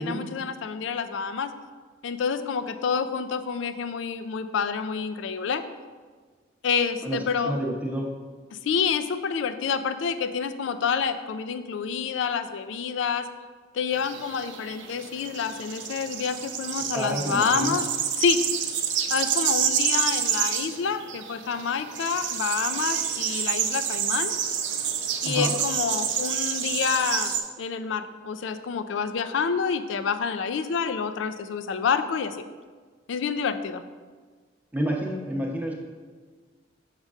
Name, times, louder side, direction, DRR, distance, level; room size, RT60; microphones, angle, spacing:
voice 1, 0.0-1.5 2.0-5.6 6.6-7.5 8.5-13.3 13.7-17.9 18.2-18.4 19.1-24.3 25.2-27.3 27.6-32.4 33.1-33.8, left 6 dB, 75° left, 11 dB, 0.4 m, -28 dB
voice 2, 7.0-8.1 16.9-17.8 25.2-25.5 34.7-35.7, right 1 dB, 10° right, -1 dB, 0.7 m, -29 dB
sound 1, 13.9-27.4, right 8 dB, 65° right, 0.5 m, -28 dB
6.4 x 6.4 x 2.4 m, 1.5 s
head